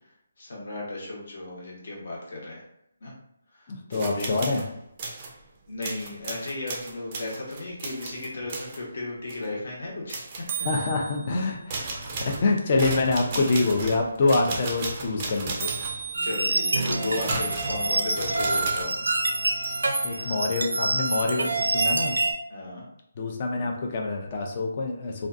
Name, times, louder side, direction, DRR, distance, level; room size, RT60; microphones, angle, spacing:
voice 1, 0.4-2.6 3.0-3.1 3.5-4.3 5.7-10.2 16.2-18.9 20.1-20.3 22.5-22.8, left 2 dB, 55° left, -3 dB, 0.9 m, -35 dB
voice 2, 3.7-4.7 10.6-11.9 12.2-15.7 16.9-17.4 20.0-22.2 23.2-25.3, left 3 dB, 35° left, 1 dB, 0.4 m, -26 dB
sound 1, 3.9-4.7 5.0-5.3 5.8-8.8 9.3-9.5 10.1-11.3 11.7-18.8, right 4 dB, 25° right, 0.4 m, -34 dB
sound 2, 16.1-22.3, right 2 dB, 85° right, 0.4 m, -26 dB
2.5 x 2.2 x 2.5 m, 0.77 s
hypercardioid pair, 165°, 0 cm